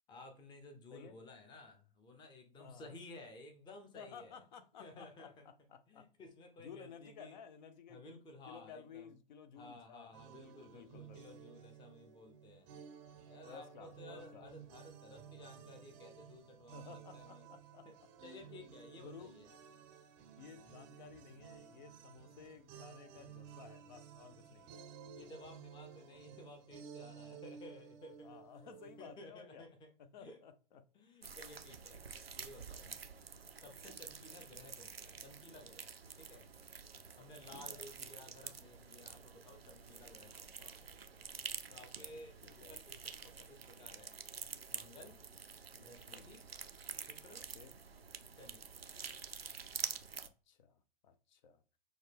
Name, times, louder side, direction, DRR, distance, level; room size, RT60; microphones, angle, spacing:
voice 1, 0.1-4.3 4.8-5.4 5.9-7.4 7.9-9.1 9.6-12.7 13.3-17.4 17.8-17.9 18.2-19.5 25.2-28.4 29.0-29.9 30.2-30.4 30.9-32.0 32.3-32.9 33.6-35.9 36.2-36.5 37.2-41.2 41.7-44.1 44.7-45.2 45.7-46.4 47.0-47.5 48.3-48.7, left 2 dB, 15° left, 0.7 m, -55 dB
voice 2, 2.6-3.0 3.9-6.1 6.6-8.0 8.5-10.2 10.4-11.4 13.5-14.5 16.7-18.1 19.0-19.4 20.4-24.7 28.2-29.7 30.0-30.9 32.8-33.0 36.9-37.9 41.8-42.8 45.0-45.1 46.1-46.3 47.5-47.7 50.5-51.6, left 7 dB, 50° left, 0.6 m, -55 dB
sound 1, 10.1-29.2, right 8 dB, 30° right, 0.6 m, -55 dB
sound 2, 31.2-50.3, right 6 dB, 90° right, 0.5 m, -48 dB
6.3 x 2.3 x 3.4 m
figure-of-eight pair, 100°, 29 cm